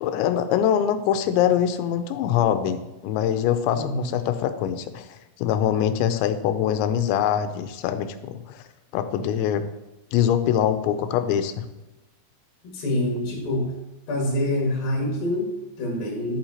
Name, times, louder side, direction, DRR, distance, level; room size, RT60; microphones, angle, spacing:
voice 1, 0.0-8.6 8.9-9.7 10.1-11.7, left 9 dB, 90° left, 10 dB, 2.9 m, -23 dB
voice 2, 3.8-4.1 12.6-13.8 14.1-16.4, left 1 dB, 60° left, -1 dB, 3.5 m, -26 dB
11.5 x 8.7 x 2.9 m, 1.0 s
omnidirectional pair, 5.2 m